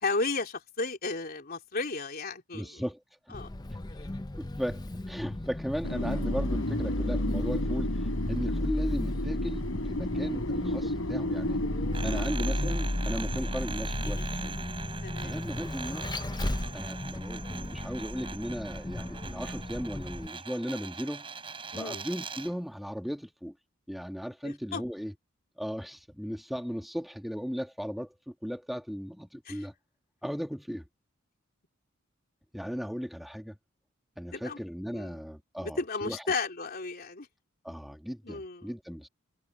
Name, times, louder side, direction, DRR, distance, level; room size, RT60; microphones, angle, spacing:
voice 1, 0.0-2.8 3.3-3.5 12.0-12.2 13.3-13.4 15.0-15.3 21.7-22.0 24.4-24.8 29.5-29.6 34.3-34.6 34.9-35.2 35.6-37.3 38.2-38.7, left 3 dB, 50° left, 3.3 m, -34 dB
voice 2, 2.5-3.4 4.4-11.7 12.0-14.6 15.2-16.2 16.7-21.3 21.7-23.5 23.9-25.1 25.6-29.7 30.2-30.9 32.5-33.5 34.2-36.2 37.6-39.1, equal, ahead, 1.5 m, -36 dB
Vehicle, 3.3-20.3, left 1 dB, 20° left, 0.7 m, -34 dB
Wind, 5.8-14.6, left 1 dB, 80° left, 4.3 m, -34 dB
sound 1, 11.9-22.6, right 5 dB, 25° right, 5.8 m, -42 dB
head